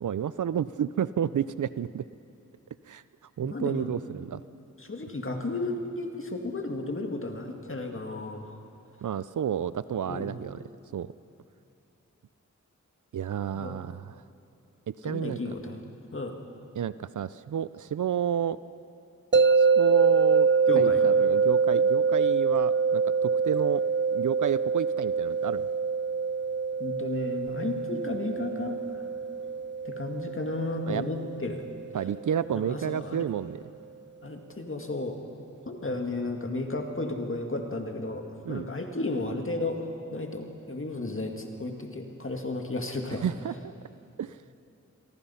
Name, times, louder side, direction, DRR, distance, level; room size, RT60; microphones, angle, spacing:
voice 1, 0.0-2.0 2.9-3.0 3.4-4.4 9.0-10.6 10.9-11.1 13.1-14.2 14.9-15.6 16.8-18.6 19.6-20.5 20.8-23.8 24.1-25.7 30.9-31.0 31.9-33.6 38.4-38.7 43.1-43.7 44.2-44.4, right 9 dB, 80° right, 16 dB, 0.5 m, -31 dB
voice 2, 3.4-3.9 4.8-8.5 10.1-10.3 13.5-13.8 15.0-15.8 16.1-16.4 20.7-21.0 26.8-29.0 29.9-31.6 32.5-33.3 34.2-35.2 35.7-38.2 38.5-43.2, left 2 dB, 45° left, 3 dB, 2.1 m, -33 dB
sound 1, 19.3-32.4, right 5 dB, 35° right, 0.7 m, -25 dB
29.0 x 23.0 x 5.7 m, 2.6 s
wide cardioid pair, 80°, 30 cm